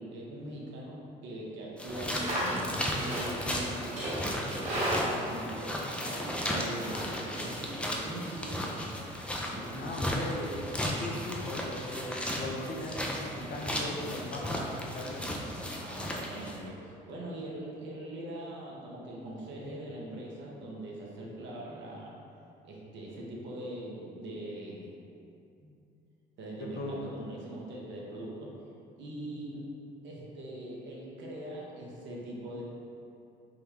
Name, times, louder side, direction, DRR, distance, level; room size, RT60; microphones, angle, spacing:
voice 1, 0.0-2.4 2.9-8.6 9.4-10.3 11.1-11.2 15.6-22.1 22.6-25.0 25.6-25.7 26.4-28.6 29.0-29.6 30.0-32.6, right 1 dB, 60° right, -4 dB, 0.8 m, -42 dB
sound 1, 1.8-16.6, equal, 5° left, 0.4 m, -35 dB
Livestock farm animals working animals, 1.9-7.6, equal, 30° right, 1.1 m, -36 dB
voice 2, 9.8-15.4 26.7-27.1, left 1 dB, 45° left, -2 dB, 0.6 m, -39 dB
3.7 x 2.2 x 3.0 m, 2.7 s
hypercardioid pair, 60°, 21 cm